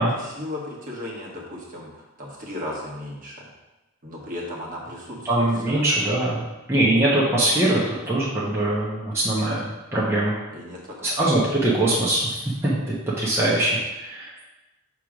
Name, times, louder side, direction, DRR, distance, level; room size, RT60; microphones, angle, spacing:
voice 1, 0.0-3.5 4.0-6.0 10.5-11.2, left 1 dB, 40° right, -3 dB, 1.4 m, -36 dB
voice 2, 5.2-10.3 11.0-12.2 12.6-14.3, right 1 dB, 10° right, -8 dB, 1.0 m, -22 dB
6.7 x 3.1 x 4.9 m, 1.1 s
head